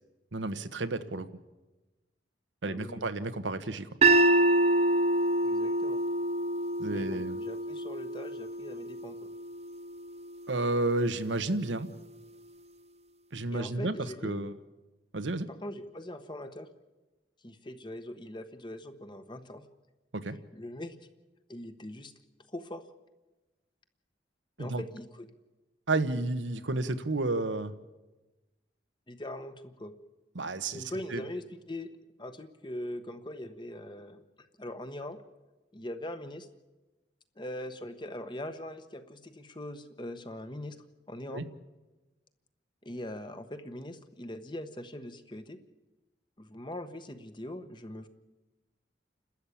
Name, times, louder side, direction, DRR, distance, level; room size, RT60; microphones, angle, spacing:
voice 1, 0.3-1.3 2.6-3.9 6.8-7.4 10.5-11.9 13.3-14.0 14.2-14.5 15.1-15.5 20.1-20.4 24.6-24.8 25.9-27.7 30.3-30.8 31.1-31.2 41.3-41.4, right 2 dB, 90° right, 10 dB, 1.2 m, -31 dB
voice 2, 2.6-3.0 5.4-6.0 6.9-9.3 13.5-14.4 15.5-16.7 17.4-19.6 20.5-21.0 21.5-22.1 22.5-22.8 24.6-25.3 29.1-29.9 30.7-31.9 32.2-34.2 34.6-35.2 35.7-36.5 37.4-40.8 41.1-41.4 42.8-45.6 46.4-48.1, left 1 dB, 25° left, 9 dB, 1.2 m, -41 dB
sound 1, 4.0-10.2, right 2 dB, 35° right, 0.8 m, -27 dB
29.5 x 13.0 x 8.5 m, 1.1 s
head